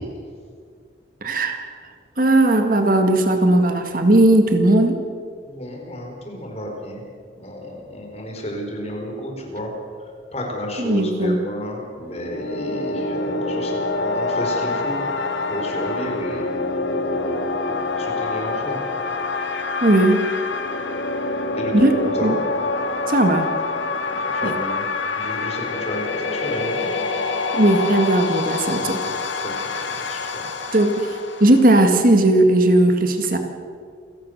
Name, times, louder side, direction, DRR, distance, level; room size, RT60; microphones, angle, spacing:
voice 1, 1.2-1.7 2.2-5.0 10.8-11.4 19.8-20.2 21.7-22.4 23.1-23.5 24.4-24.5 27.5-29.0 30.7-33.4, right 1 dB, 45° right, 5 dB, 1.9 m, -17 dB
voice 2, 5.5-7.0 7.3-9.7 10.3-15.0 15.5-16.5 16.8-18.8 21.5-22.4 24.0-24.8 25.1-26.9 28.7-30.5, equal, 35° left, 1 dB, 4.6 m, -32 dB
sound 1, 12.0-31.9, left 3 dB, 80° left, 1.9 m, -26 dB
28.5 x 17.0 x 6.6 m, 2.1 s
head